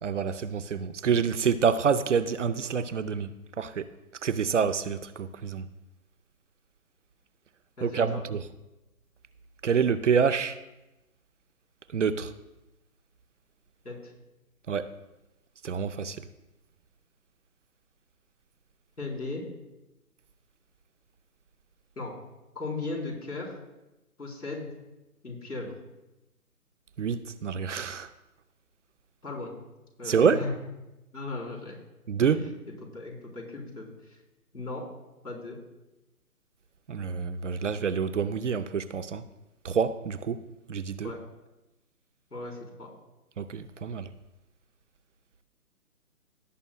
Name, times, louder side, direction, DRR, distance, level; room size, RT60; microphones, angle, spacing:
voice 1, 0.0-3.9 4.2-5.7 7.8-8.4 9.6-10.6 11.9-12.3 14.7-14.9 15.6-16.2 27.0-28.1 30.1-30.5 32.1-32.5 36.9-39.2 39.6-40.4 40.7-41.1 43.4-44.1, right 6 dB, 55° right, 0.6 m, -27 dB
voice 2, 7.8-8.2 13.8-14.1 19.0-19.4 22.0-22.1 22.5-23.6 24.2-24.7 25.2-25.7 29.2-29.5 30.0-30.5 31.1-31.8 32.3-32.4 32.9-34.2 34.5-34.9 35.2-35.6 41.0-41.2 42.3-42.9, left 3 dB, 85° left, 4.0 m, -36 dB
16.5 x 8.7 x 2.2 m
figure-of-eight pair, 145°, 45 cm